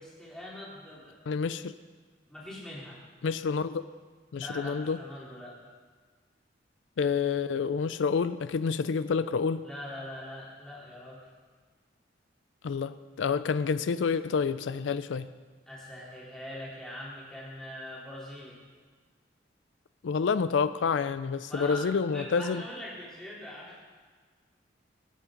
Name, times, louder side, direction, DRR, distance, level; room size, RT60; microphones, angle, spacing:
voice 1, 0.2-1.2 2.3-3.0 4.3-5.5 9.6-11.2 15.7-18.6 21.4-23.8, left 1 dB, 5° left, -7 dB, 3.8 m, -42 dB
voice 2, 1.3-1.7 3.2-3.8 4.3-5.0 7.0-9.7 12.6-15.3 20.0-22.6, left 5 dB, 85° left, 13 dB, 0.4 m, -28 dB
18.5 x 7.3 x 5.1 m, 1.5 s
head